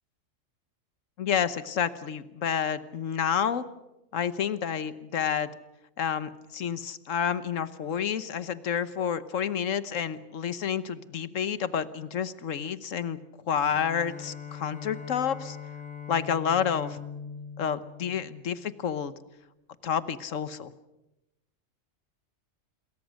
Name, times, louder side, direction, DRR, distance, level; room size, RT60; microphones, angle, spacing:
voice 1, 1.2-3.6 4.1-5.5 6.0-13.2 13.5-15.6 16.1-17.0 17.6-19.1 19.8-20.7, left 8 dB, 75° left, 14 dB, 1.4 m, -29 dB
Bowed string instrument, 13.7-18.9, left 7 dB, 5° left, 4.3 m, -42 dB
27.5 x 22.0 x 6.4 m, 0.95 s
omnidirectional pair, 1.4 m